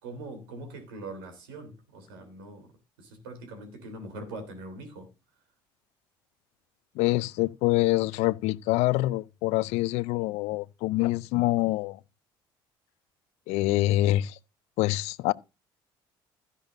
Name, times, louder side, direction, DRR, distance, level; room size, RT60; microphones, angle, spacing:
voice 1, 0.0-2.7 3.0-5.1, right 2 dB, 85° right, 3.5 m, -42 dB
voice 2, 7.0-12.0 13.5-14.4 14.8-15.3, left 17 dB, 70° left, 0.5 m, -25 dB
13.0 x 10.5 x 2.6 m
hypercardioid pair, 65°, 11 cm